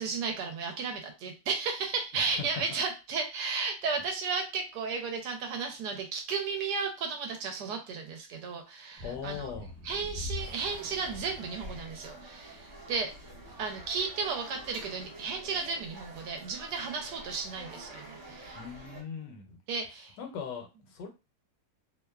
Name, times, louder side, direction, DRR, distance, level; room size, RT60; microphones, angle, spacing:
voice 1, 0.0-9.5 9.8-13.1 13.6-18.6 19.7-20.2, right 5 dB, 75° right, 3 dB, 1.1 m, -34 dB
voice 2, 2.1-2.8 9.0-9.7 18.5-19.6 20.2-21.1, left 6 dB, 75° left, 4 dB, 1.2 m, -40 dB
sound 1, 9.0-15.9, left 2 dB, 25° right, 0.9 m, -46 dB
sound 2, 10.3-19.0, right 1 dB, 50° right, 1.2 m, -48 dB
2.9 x 2.1 x 2.2 m, 0.28 s
omnidirectional pair, 1.9 m